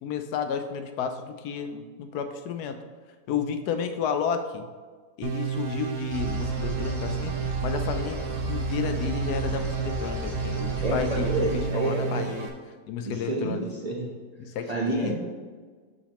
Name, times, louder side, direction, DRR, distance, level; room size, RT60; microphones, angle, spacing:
voice 1, 0.0-2.8 3.3-4.7 5.2-8.2 8.5-11.5 11.7-12.5 12.9-13.6 14.4-15.1, left 7 dB, 70° left, 7 dB, 1.0 m, -32 dB
sound 1, 5.2-12.5, right 8 dB, 90° right, 1.6 m, -31 dB
sound 2, 6.1-11.6, left 2 dB, 15° right, 1.0 m, -34 dB
voice 2, 10.8-12.3 13.0-14.1 14.7-15.2, right 1 dB, 40° right, -2 dB, 0.5 m, -29 dB
12.0 x 4.0 x 2.9 m, 1.5 s
omnidirectional pair, 2.0 m